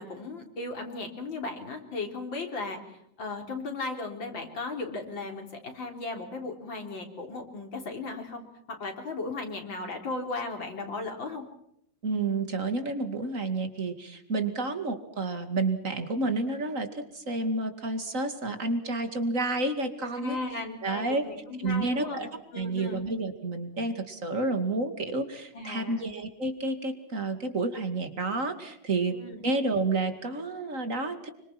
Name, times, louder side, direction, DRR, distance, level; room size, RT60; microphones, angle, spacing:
voice 1, 0.0-11.4 20.2-22.3 22.5-23.0 25.5-26.1 29.1-29.5, left 3 dB, 75° left, 3 dB, 4.4 m, -36 dB
voice 2, 12.0-21.2 21.6-22.3 22.6-29.2 29.4-31.3, right 3 dB, 40° right, 8 dB, 2.7 m, -30 dB
26.5 x 24.5 x 5.9 m, 0.74 s
omnidirectional pair, 2.1 m